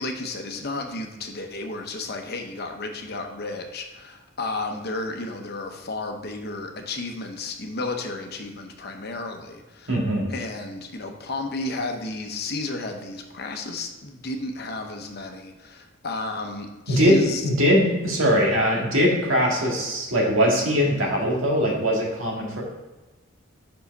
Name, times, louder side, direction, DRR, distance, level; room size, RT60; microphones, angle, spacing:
voice 1, 0.0-9.9 10.3-17.4, left 2 dB, 50° left, 4 dB, 0.8 m, -32 dB
voice 2, 9.9-10.3 16.9-22.6, equal, 85° right, -2 dB, 1.8 m, -21 dB
5.6 x 4.9 x 5.2 m, 1.2 s
head